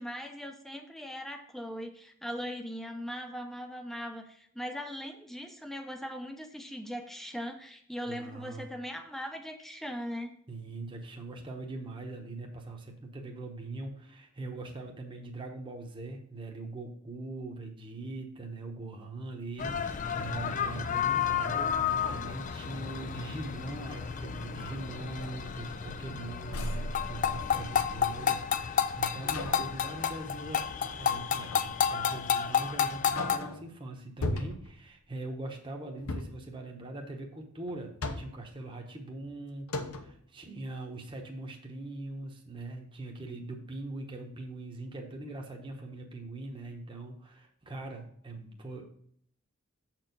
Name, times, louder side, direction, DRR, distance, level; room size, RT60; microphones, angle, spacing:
voice 1, 0.0-10.4, equal, ahead, 5 dB, 0.7 m, -39 dB
voice 2, 8.1-8.7 10.5-48.9, right 2 dB, 25° right, 1 dB, 1.0 m, -42 dB
sound 1, 19.6-33.4, left 7 dB, 35° left, 0.4 m, -31 dB
sound 2, 21.9-23.1 23.6-24.1 24.6-24.8 25.2-26.1 26.5-28.0 29.3-29.8 31.4-31.9 32.3-32.4 32.9-33.7 34.2-34.8 36.0-36.5 37.7-38.5 39.3-39.4 39.7-40.2, left 2 dB, 80° left, 0.8 m, -38 dB
7.2 x 4.6 x 5.2 m, 0.65 s
head